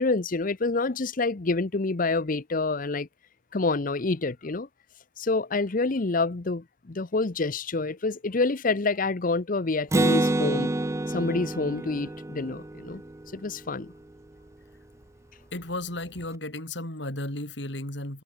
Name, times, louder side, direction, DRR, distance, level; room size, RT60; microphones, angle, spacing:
voice 1, 0.0-3.1 3.5-4.7 5.2-10.7 11.1-13.0 13.3-13.9, left 3 dB, 45° left, 0.8 m, -27 dB
Acoustic guitar, 9.9-13.6, right 2 dB, 15° right, 0.5 m, -27 dB
voice 2, 15.5-18.2, left 1 dB, 65° left, 6.7 m, -34 dB
open air
head